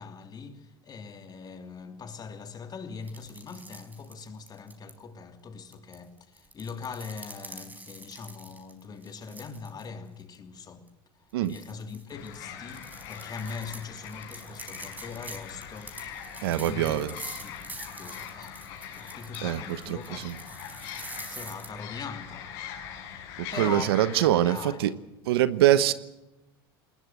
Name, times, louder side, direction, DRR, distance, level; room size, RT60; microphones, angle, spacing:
voice 1, 0.0-10.9 11.4-16.0 16.5-17.1 17.4-17.6 18.0-18.7 19.0-20.3 21.3-22.6 23.5-24.0 24.3-25.0, left 5 dB, 30° left, 2.9 m, -41 dB
sound 1, 3.0-4.9 5.7-9.9 10.2-10.4 10.9-11.0 11.5-21.7, right 2 dB, 15° right, 4.6 m, -45 dB
sound 2, 12.1-24.3, left 9 dB, 65° left, 6.2 m, -42 dB
voice 2, 16.4-17.1 19.4-19.6 19.9-20.3 23.6-24.9 25.3-25.9, right 12 dB, 80° right, 1.1 m, -24 dB
21.0 x 20.0 x 7.7 m
hypercardioid pair, 95°, 13 cm